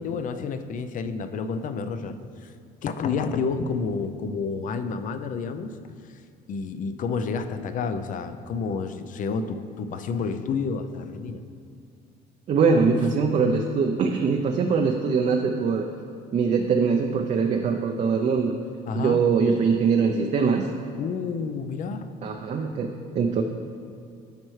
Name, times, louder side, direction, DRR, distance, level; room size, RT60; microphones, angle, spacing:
voice 1, 0.0-2.5 2.8-5.7 6.0-6.1 6.5-11.4 18.8-19.2 21.0-22.1, left 5 dB, 50° left, 9 dB, 0.5 m, -30 dB
voice 2, 12.5-15.9 16.3-18.5 18.9-20.7 22.2-23.4, right 5 dB, 45° right, 3 dB, 0.5 m, -22 dB
12.0 x 4.4 x 3.2 m, 2.4 s
cardioid pair, 110°, 17 cm